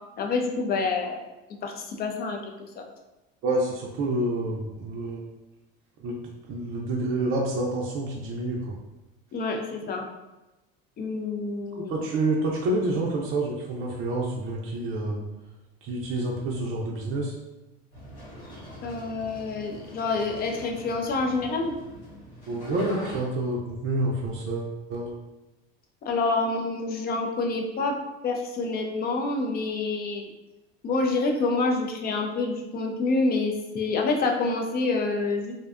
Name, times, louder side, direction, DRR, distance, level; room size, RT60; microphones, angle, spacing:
voice 1, 0.2-1.2 1.6-2.8 9.3-10.1 11.0-11.9 18.8-21.7 26.0-28.0 28.2-30.3 30.8-35.5, left 3 dB, 30° left, 2 dB, 0.4 m, -27 dB
voice 2, 3.4-5.2 6.0-6.2 6.5-8.8 11.9-15.2 15.8-17.4 22.5-25.1, right 2 dB, 40° right, -2 dB, 0.5 m, -28 dB
sound 1, 17.9-23.2, equal, 90° left, 1.4 m, -43 dB
2.6 x 2.2 x 2.3 m, 1.0 s
supercardioid pair, 110°, 31 cm